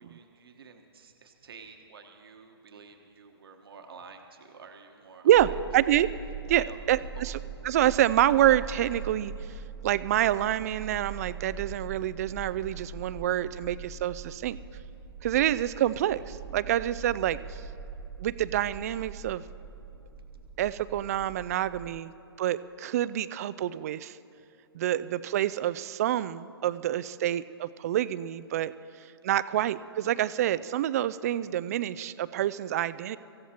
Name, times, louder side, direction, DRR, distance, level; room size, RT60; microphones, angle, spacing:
voice 1, 0.0-5.5 6.6-6.8 7.1-7.2, right 5 dB, 65° right, 4 dB, 1.3 m, -50 dB
voice 2, 5.2-6.1 6.5-7.4 7.6-14.6 15.2-17.6 18.2-19.4 20.6-22.1 22.4-24.2 24.7-28.7 29.2-33.2, right 12 dB, 35° right, 16 dB, 0.4 m, -27 dB
sound 1, 5.3-22.0, right 4 dB, 10° right, 1.4 m, -42 dB
25.0 x 15.0 x 2.9 m, 2.7 s
figure-of-eight pair, 135°, 14 cm